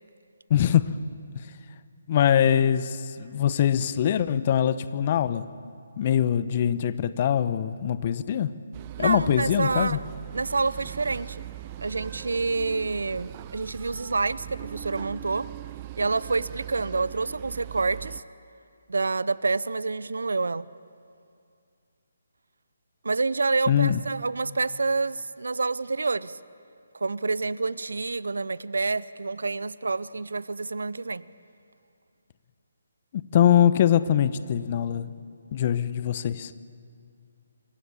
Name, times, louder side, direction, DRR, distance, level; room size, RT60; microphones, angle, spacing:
voice 1, 0.5-0.9 2.1-5.5 6.0-8.5 9.0-10.0 23.7-24.0 33.1-35.2 35.5-36.5, left 10 dB, 40° left, 15 dB, 0.9 m, -23 dB
sound 1, 8.7-18.2, right 14 dB, 30° right, 0.5 m, -40 dB
voice 2, 9.0-10.0 10.3-11.4 11.8-15.5 16.0-18.2 18.9-20.7 23.0-26.4 26.9-31.2, right 3 dB, 75° right, 19 dB, 0.7 m, -28 dB
27.0 x 23.0 x 7.2 m, 2.4 s
figure-of-eight pair, 145°, 0 cm